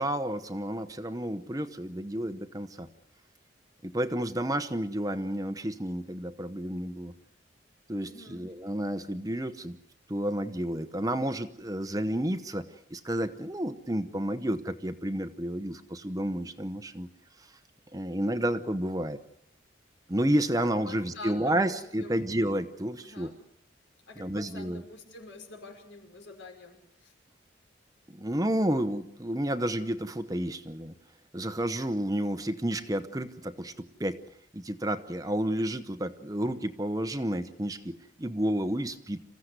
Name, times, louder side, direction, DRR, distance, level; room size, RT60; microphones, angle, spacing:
voice 1, 0.0-2.9 3.8-7.1 7.9-9.8 10.1-17.1 17.9-19.2 20.1-23.3 24.2-24.8 28.1-30.9 31.3-34.2 34.5-39.2, right 1 dB, 20° right, 10 dB, 0.9 m, -31 dB
voice 2, 8.0-8.5 20.6-22.2 23.0-23.4 24.1-27.1, left 3 dB, 80° left, 4 dB, 5.7 m, -47 dB
27.5 x 16.0 x 8.1 m, 0.75 s
head